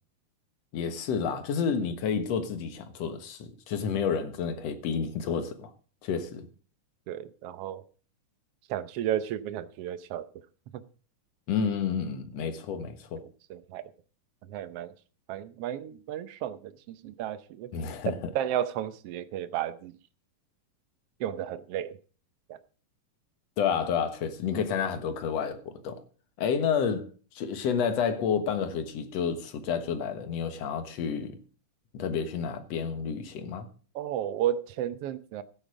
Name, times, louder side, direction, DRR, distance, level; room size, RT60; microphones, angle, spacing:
voice 1, 0.7-5.7 6.0-6.5 11.5-13.2 17.7-18.1 23.6-26.0 26.4-27.1 27.4-31.4 31.9-33.7, left 6 dB, 60° left, 2.4 m, -30 dB
voice 2, 7.1-7.8 8.7-10.3 10.7-10.8 13.5-13.8 14.5-14.9 15.3-17.7 18.3-19.9 21.2-21.9 22.5-22.6 33.9-35.4, right 11 dB, 75° right, 1.4 m, -33 dB
15.0 x 8.2 x 5.1 m
omnidirectional pair, 3.6 m